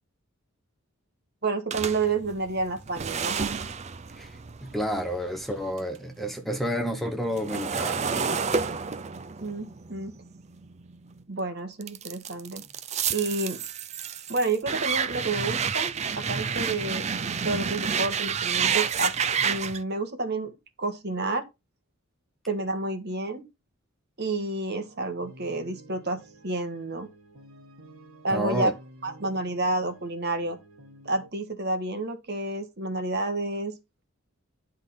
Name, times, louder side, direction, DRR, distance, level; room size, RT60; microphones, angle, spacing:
voice 1, 1.4-3.4 9.4-10.1 11.3-12.6 13.1-13.6 14.3-19.1 19.4-20.5 20.8-21.4 22.5-23.5 24.2-27.1 28.2-28.7 29.0-30.6 31.0-33.8, right 2 dB, 50° right, 1.4 m, -30 dB
sound 1, 1.7-6.0 6.3-11.2 11.8-19.8, right 6 dB, 30° right, 0.5 m, -30 dB
voice 2, 4.2-8.1 28.3-28.7, equal, ahead, 0.8 m, -30 dB
sound 2, 24.9-31.3, right 1 dB, 75° right, 1.4 m, -51 dB
11.0 x 3.7 x 5.6 m
head